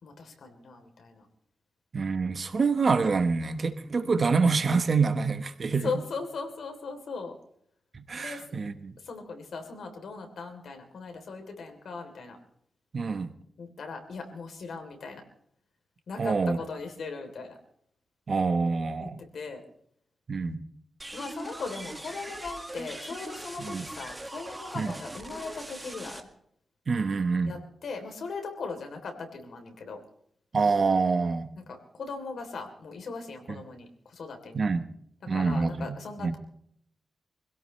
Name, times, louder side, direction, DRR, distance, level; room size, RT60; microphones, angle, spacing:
voice 1, 0.0-1.3 5.8-7.3 8.2-8.5 9.0-12.4 13.6-15.2 16.1-17.5 19.0-19.1 19.3-19.6 21.1-26.3 27.5-30.0 32.0-34.6 35.3-36.4, left 4 dB, 80° left, 4 dB, 3.4 m, -38 dB
voice 2, 1.9-5.9 7.9-8.9 12.9-13.3 16.2-16.6 18.3-19.2 20.3-20.6 23.6-23.8 24.7-24.9 26.9-27.6 30.5-31.5 33.5-33.6 34.5-34.8 35.3-36.3, right 4 dB, 50° right, 9 dB, 1.2 m, -26 dB
sound 1, 21.0-26.2, right 1 dB, 15° right, 2.0 m, -41 dB
25.5 x 17.0 x 3.3 m, 0.69 s
wide cardioid pair, 100°, 0 cm